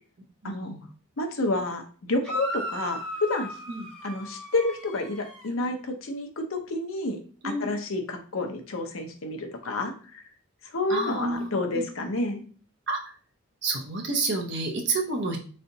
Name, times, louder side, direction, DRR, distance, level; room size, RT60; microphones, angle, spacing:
voice 1, 0.4-0.9 3.7-3.9 7.4-7.7 10.9-11.8 12.9-13.1 13.6-15.4, right 3 dB, 55° right, 1 dB, 0.8 m, -29 dB
voice 2, 1.2-1.8 2.1-3.5 4.0-7.2 7.6-10.2 10.7-12.4, left 2 dB, 75° left, 4 dB, 0.7 m, -29 dB
sound 1, 2.2-5.5, equal, 5° left, 1.3 m, -36 dB
3.8 x 3.2 x 2.7 m, 0.41 s
head